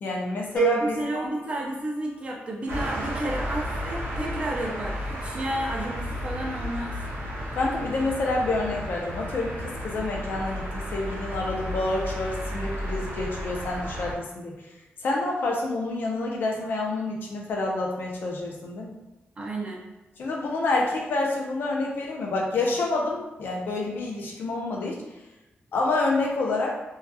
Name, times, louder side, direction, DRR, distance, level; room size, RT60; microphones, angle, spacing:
voice 1, 0.0-1.0 7.5-14.5 15.0-19.0 20.2-25.0 25.7-26.7, left 2 dB, 60° left, -1 dB, 0.5 m, -28 dB
sound 1, 0.6-2.6, right 5 dB, 15° left, 0.8 m, -30 dB
voice 2, 0.8-7.0 19.4-19.8, right 1 dB, 30° right, -1 dB, 0.4 m, -31 dB
sound 2, 2.7-14.1, equal, 85° right, 0.7 m, -33 dB
2.7 x 2.3 x 2.2 m, 1.0 s
wide cardioid pair, 175°, 4 cm